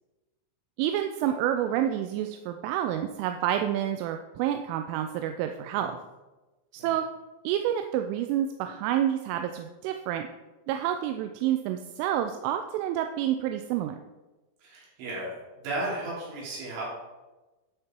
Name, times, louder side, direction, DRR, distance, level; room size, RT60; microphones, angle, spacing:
voice 1, 0.8-6.0 6.7-7.1 7.4-10.3 10.7-14.0, right 11 dB, 90° right, 6 dB, 3.1 m, -28 dB
voice 2, 14.6-15.3 15.5-16.8, right 2 dB, 75° right, -5 dB, 5.6 m, -34 dB
12.0 x 6.7 x 4.5 m, 1.1 s
omnidirectional pair, 5.5 m